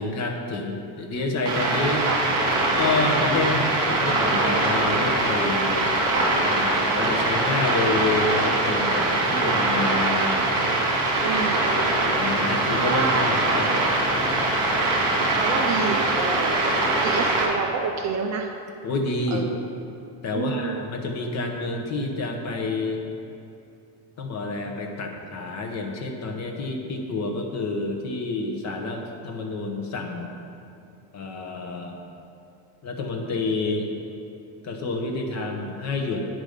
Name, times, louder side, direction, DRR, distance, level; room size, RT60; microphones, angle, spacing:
voice 1, 0.0-2.1 2.8-5.9 6.4-10.5 12.2-14.1 18.8-19.5 20.2-23.0 24.2-30.3 31.1-32.0 32.8-33.9 34.6-36.3, left 3 dB, 35° left, 2 dB, 0.9 m, -28 dB
sound 1, 1.4-17.4, right 2 dB, 60° right, 2.4 m, -22 dB
voice 2, 11.2-12.1 12.7-13.3 15.4-18.6 19.3-19.6 20.3-20.9, right 5 dB, 40° right, 3 dB, 0.5 m, -29 dB
9.1 x 5.2 x 6.5 m, 2.6 s
cardioid pair, 175°, 47 cm